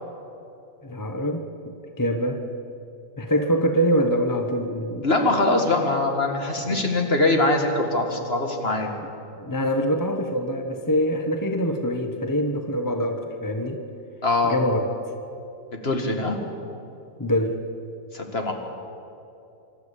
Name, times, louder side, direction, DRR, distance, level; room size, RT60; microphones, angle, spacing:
voice 1, 0.8-2.4 3.2-5.1 6.6-6.9 9.4-13.8 14.4-15.1 17.2-17.6, equal, 15° left, 6 dB, 0.7 m, -25 dB
voice 2, 5.0-8.9 14.2-14.5 15.7-16.4 18.1-18.5, left 2 dB, 35° left, 3 dB, 2.2 m, -22 dB
26.0 x 13.0 x 8.3 m, 2.8 s
omnidirectional pair, 1.9 m